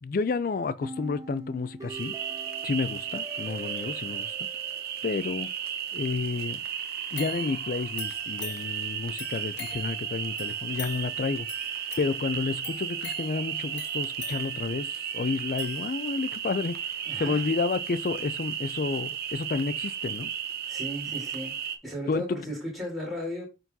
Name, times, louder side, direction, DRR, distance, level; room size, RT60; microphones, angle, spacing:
voice 1, 0.0-2.2 2.6-4.5 5.0-5.5 5.9-6.6 7.1-11.5 12.0-20.3 22.1-22.4, left 4 dB, 50° left, 0.4 m, -30 dB
sound 1, 0.8-5.8, right 2 dB, 20° right, 0.4 m, -43 dB
sound 2, 1.9-21.8, right 9 dB, 55° right, 0.7 m, -34 dB
sound 3, 7.1-16.4 16.9-17.0, left 7 dB, 85° left, 1.2 m, -45 dB
voice 2, 17.1-17.4 20.7-21.5 21.8-23.5, equal, ahead, 3.7 m, -35 dB
9.0 x 3.9 x 2.8 m
head